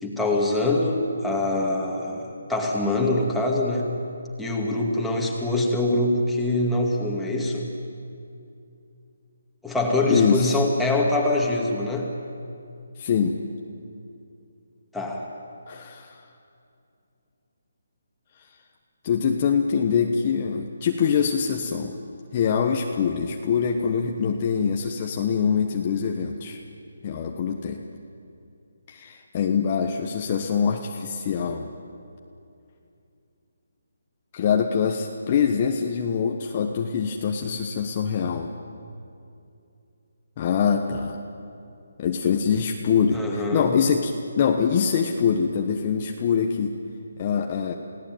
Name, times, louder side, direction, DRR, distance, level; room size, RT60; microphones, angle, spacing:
voice 1, 0.0-3.9 4.4-7.7 9.6-12.1 14.9-15.3 43.1-43.8, left 2 dB, ahead, -3 dB, 2.4 m, -24 dB
voice 2, 10.1-10.6 13.0-13.4 15.7-16.2 18.4-18.5 19.0-22.0 22.3-26.6 27.0-27.8 28.9-31.7 34.3-38.5 40.4-41.2 42.0-46.8 47.2-47.7, left 6 dB, 25° left, 2 dB, 1.2 m, -24 dB
29.0 x 17.5 x 9.3 m, 2.6 s
hypercardioid pair, 170°, 0 cm